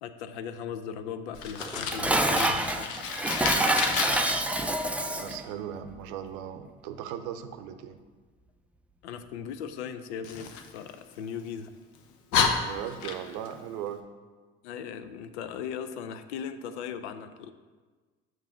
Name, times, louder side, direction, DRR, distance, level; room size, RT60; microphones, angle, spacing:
voice 1, 0.0-2.9 9.0-11.7 14.6-17.5, left 7 dB, 85° left, 10 dB, 0.5 m, -38 dB
Fire, 1.3-4.3 10.2-11.5 11.9-12.0 12.3-13.5, left 6 dB, 65° left, 0.8 m, -30 dB
Dishes pots and pans, 1.6-5.4, right 1 dB, 5° right, 0.4 m, -27 dB
voice 2, 5.1-8.0 12.6-14.0, right 9 dB, 70° right, 9 dB, 0.6 m, -38 dB
6.7 x 3.1 x 5.8 m, 1.4 s
hypercardioid pair, 70°, 33 cm